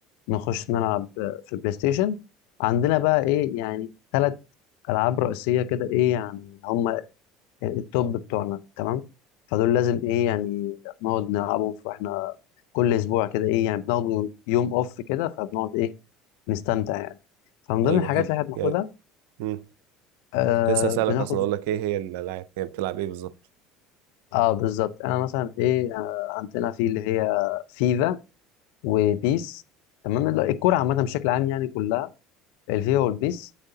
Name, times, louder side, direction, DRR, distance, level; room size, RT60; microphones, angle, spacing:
voice 1, 0.3-2.2 2.6-3.9 4.1-4.3 4.9-7.0 7.6-9.0 9.5-12.3 12.7-15.9 16.5-17.1 17.7-18.9 20.3-21.2 24.3-28.2 28.8-29.6 30.0-32.1 32.7-33.5, left 13 dB, 70° left, 0.6 m, -25 dB
voice 2, 17.8-18.3 18.5-18.8 19.4-19.6 20.7-23.3, right 13 dB, 70° right, 0.5 m, -28 dB
9.8 x 7.7 x 2.7 m
hypercardioid pair, 70°, 0 cm